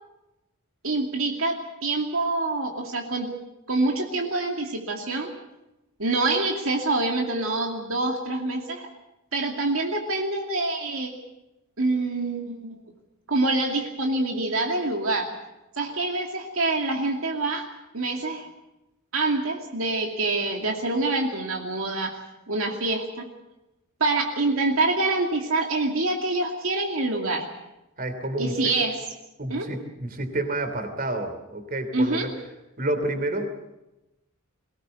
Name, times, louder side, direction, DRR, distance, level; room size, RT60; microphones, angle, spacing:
voice 1, 0.8-3.3 3.7-5.3 6.0-8.9 9.3-11.1 11.8-12.8 13.3-15.3 15.8-17.7 17.9-18.5 19.1-22.2 22.5-23.3 24.0-27.5 28.4-29.0 29.5-29.7 31.9-32.3, right 2 dB, 70° right, 2 dB, 2.5 m, -26 dB
voice 2, 28.0-28.7 29.4-32.3 32.8-33.6, right 1 dB, 45° right, 7 dB, 3.1 m, -29 dB
22.5 x 18.5 x 8.1 m, 0.97 s
head